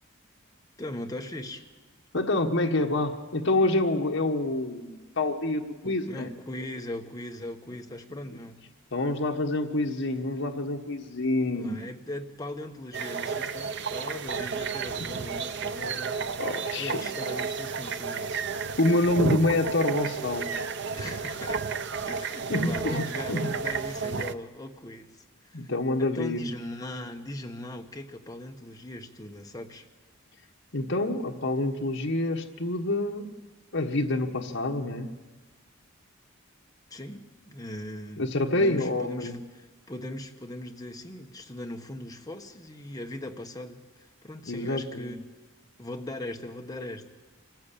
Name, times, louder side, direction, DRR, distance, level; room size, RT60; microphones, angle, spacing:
voice 1, 0.8-1.7 5.8-8.6 11.5-16.2 16.7-18.5 20.9-21.6 22.1-25.7 26.0-29.9 36.9-45.2 45.8-47.1, left 1 dB, 20° left, 4 dB, 1.3 m, -39 dB
voice 2, 2.1-6.3 8.9-11.8 16.4-16.9 18.8-20.6 22.5-23.0 23.3-23.4 25.5-26.4 30.7-33.3 33.7-35.1 38.2-39.3 44.5-45.1, left 2 dB, 65° left, 1 dB, 1.4 m, -27 dB
sound 1, 12.9-24.3, right 5 dB, 60° right, 0.7 m, -32 dB
26.0 x 15.0 x 8.6 m, 1.3 s
head